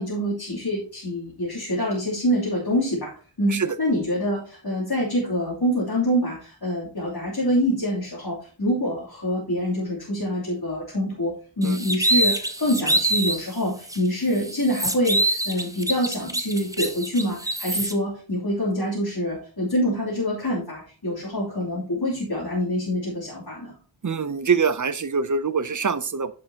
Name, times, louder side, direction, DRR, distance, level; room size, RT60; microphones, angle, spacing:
voice 1, 0.0-3.1 3.4-23.7, equal, 55° left, -8 dB, 3.1 m, -26 dB
sound 1, 11.6-13.4 13.9-14.0 14.4-17.9, right 1 dB, 10° right, 0.9 m, -25 dB
voice 2, 24.0-26.3, right 5 dB, 45° right, 15 dB, 0.6 m, -24 dB
9.9 x 6.5 x 2.9 m, 0.39 s
wide cardioid pair, 60°, 45 cm